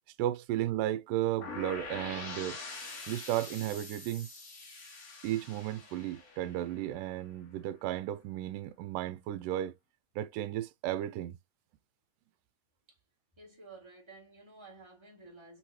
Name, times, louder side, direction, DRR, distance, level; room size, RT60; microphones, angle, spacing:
voice 1, 0.2-2.6 3.1-4.3 5.2-9.7 10.2-11.4, right 13 dB, 85° right, 2.2 m, -34 dB
sound 1, 1.4-7.3, left 3 dB, 45° left, 1.2 m, -45 dB
voice 2, 13.4-15.6, right 3 dB, 15° right, 1.0 m, -53 dB
6.1 x 3.1 x 2.8 m
omnidirectional pair, 3.8 m